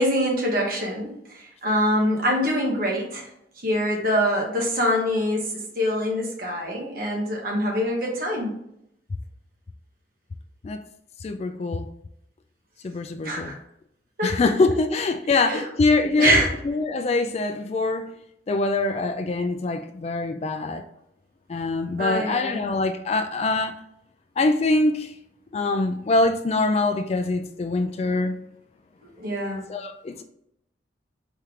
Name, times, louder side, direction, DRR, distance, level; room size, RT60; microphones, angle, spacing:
voice 1, 0.0-3.3 3.6-8.5 13.2-13.6 14.2-14.4 15.3-15.6 16.2-16.5 22.0-22.6 29.2-29.7, equal, 55° right, 1.2 m, -24 dB
voice 2, 11.2-11.9 12.8-13.6 14.2-18.1 18.5-20.8 21.5-23.7 24.4-25.1 25.5-28.4 29.7-30.2, left 3 dB, 35° left, 0.3 m, -24 dB
4.4 x 3.1 x 3.7 m
head